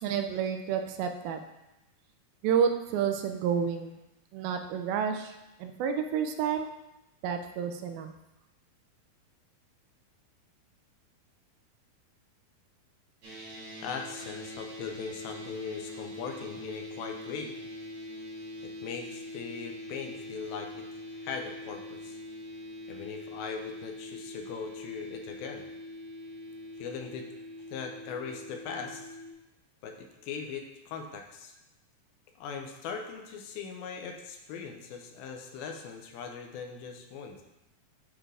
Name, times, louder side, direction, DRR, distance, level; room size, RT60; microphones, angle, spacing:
voice 1, 0.0-1.4 2.4-4.0 4.3-5.3 5.6-6.7 7.2-8.1, right 7 dB, 85° right, 6 dB, 2.4 m, -29 dB
sound 1, 13.2-29.3, left 1 dB, 60° right, 2.6 m, -43 dB
voice 2, 13.8-17.6 18.6-20.8 21.1-22.2 22.9-25.6 26.8-27.3 27.7-29.1 29.8-31.6 32.4-37.4, left 6 dB, 90° left, 4 dB, 2.6 m, -40 dB
8.9 x 3.7 x 3.4 m, 0.94 s
omnidirectional pair, 4.2 m